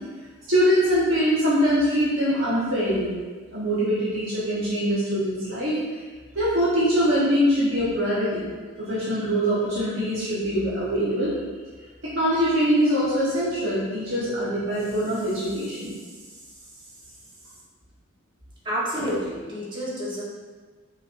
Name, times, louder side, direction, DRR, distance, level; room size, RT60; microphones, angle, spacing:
voice 1, 0.5-3.2 3.5-6.0 6.3-8.5 8.8-11.4 12.1-15.9, equal, 65° right, -10 dB, 1.3 m, -23 dB
voice 2, 18.6-20.2, equal, 25° right, -7 dB, 1.1 m, -29 dB
5.6 x 3.3 x 2.6 m, 1.4 s
head